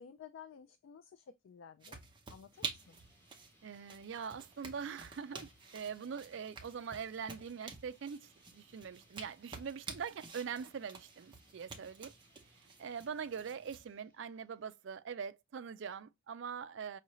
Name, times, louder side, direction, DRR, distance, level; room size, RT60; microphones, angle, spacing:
voice 1, 0.0-2.0 2.3-3.0, left 7 dB, 70° left, 0.3 m, -54 dB
sound 1, 1.8-13.8, right 4 dB, 25° right, 0.6 m, -50 dB
sound 2, 2.5-15.0, equal, 10° left, 1.1 m, -69 dB
voice 2, 3.6-12.1 12.8-17.0, right 6 dB, 60° right, 0.4 m, -43 dB
5.5 x 2.4 x 3.0 m
head